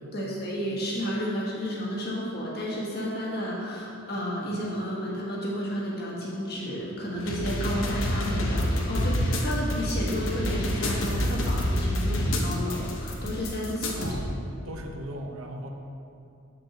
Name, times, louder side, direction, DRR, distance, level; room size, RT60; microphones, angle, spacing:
voice 1, 0.1-14.1, equal, 50° left, -5 dB, 1.4 m, -32 dB
sound 1, 7.2-14.2, left 1 dB, 70° left, 0.8 m, -28 dB
voice 2, 13.9-14.4 14.6-15.7, right 1 dB, 80° right, 3 dB, 0.7 m, -38 dB
7.5 x 4.7 x 3.9 m, 2.6 s
head